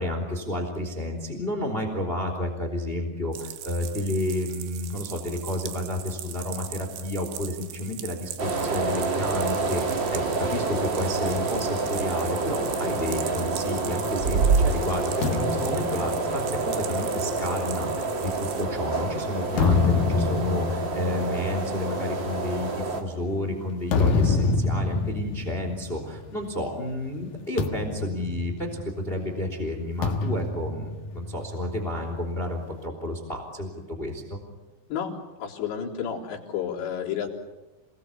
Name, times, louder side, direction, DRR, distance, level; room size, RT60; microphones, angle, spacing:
voice 1, 0.0-34.4, left 1 dB, 15° left, 5 dB, 3.1 m, -31 dB
sound 1, 3.3-18.6, right 12 dB, 85° right, 3.8 m, -40 dB
sound 2, 8.4-23.0, right 3 dB, 35° right, 2.1 m, -27 dB
sound 3, 15.2-18.8 19.3-26.8 27.0-27.2 27.6-29.2 30.0-31.8, left 4 dB, 60° left, 2.9 m, -28 dB
voice 2, 35.4-37.3, left 8 dB, 80° left, -3 dB, 5.9 m, -31 dB
28.0 x 20.0 x 8.6 m, 1.1 s
omnidirectional pair, 5.1 m